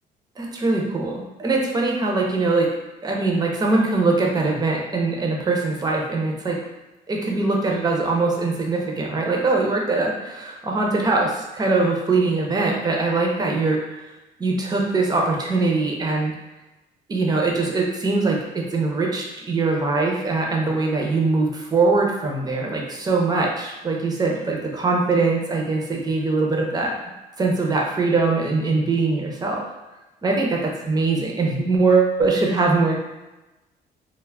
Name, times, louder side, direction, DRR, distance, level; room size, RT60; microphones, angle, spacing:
voice 1, 0.4-2.7 3.0-6.6 7.1-14.0 14.4-16.3 17.1-26.9 27.4-29.6 30.2-32.9, right 3 dB, 25° right, 0 dB, 0.5 m, -22 dB
2.3 x 2.1 x 3.2 m, 1.0 s
cardioid pair, 110°, 17 cm